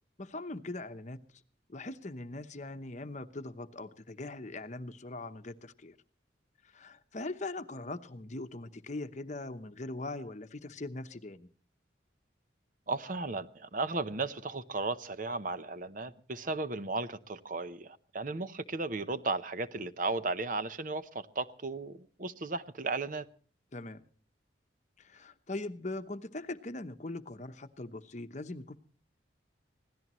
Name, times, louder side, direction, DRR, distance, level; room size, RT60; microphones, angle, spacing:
voice 1, 0.2-1.2 1.7-5.9 6.7-11.5 23.7-24.0 25.0-28.8, left 2 dB, 40° left, 0.9 m, -41 dB
voice 2, 12.9-23.3, right 3 dB, 45° right, 0.8 m, -35 dB
25.0 x 17.0 x 3.1 m
head